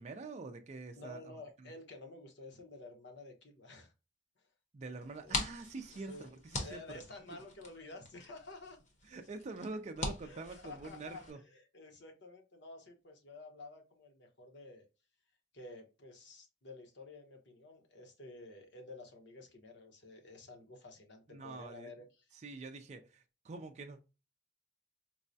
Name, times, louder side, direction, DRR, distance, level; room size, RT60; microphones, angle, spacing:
voice 1, 0.0-1.4 1.6-1.7 4.7-7.0 9.0-11.4 21.3-21.9 22.4-24.1, right 3 dB, 35° right, 0.4 m, -46 dB
voice 2, 0.9-3.9 5.2-5.5 6.1-6.3 6.5-8.8 10.2-14.8 15.5-22.4, left 2 dB, 65° left, 0.9 m, -51 dB
sound 1, 5.0-11.3, left 2 dB, 40° left, 0.9 m, -43 dB
4.6 x 2.1 x 2.6 m
head